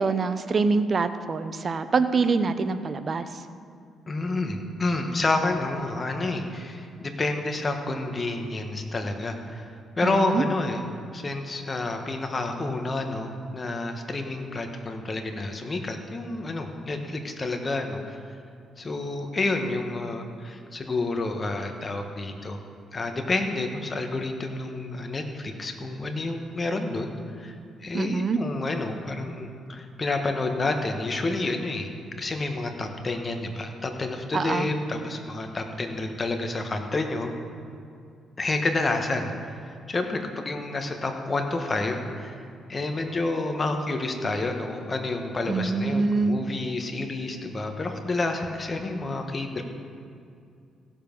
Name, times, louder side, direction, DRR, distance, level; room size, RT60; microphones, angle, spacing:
voice 1, 0.0-3.4 10.0-10.4 27.9-28.4 34.3-34.7 45.5-46.4, right 4 dB, 40° right, 11 dB, 0.7 m, -25 dB
voice 2, 4.1-10.8 11.1-18.2 18.8-22.6 22.9-27.5 27.8-31.9 32.2-37.3 38.4-42.4 42.7-49.6, left 2 dB, 30° left, 4 dB, 1.4 m, -29 dB
16.0 x 7.2 x 5.4 m, 2.4 s
cardioid pair, 90°, 0 cm